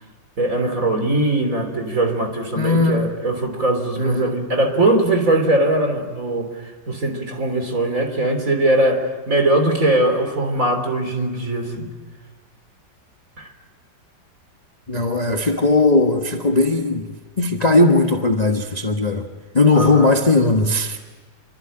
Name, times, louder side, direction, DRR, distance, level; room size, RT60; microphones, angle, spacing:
voice 1, 0.4-11.9 13.4-13.5 19.7-20.1, right 1 dB, 45° right, 3.9 m, -20 dB
voice 2, 2.6-3.1 4.0-4.4 14.9-19.3 19.5-21.0, left 2 dB, 25° left, 1.2 m, -18 dB
27.5 x 24.0 x 9.0 m
omnidirectional pair, 2.0 m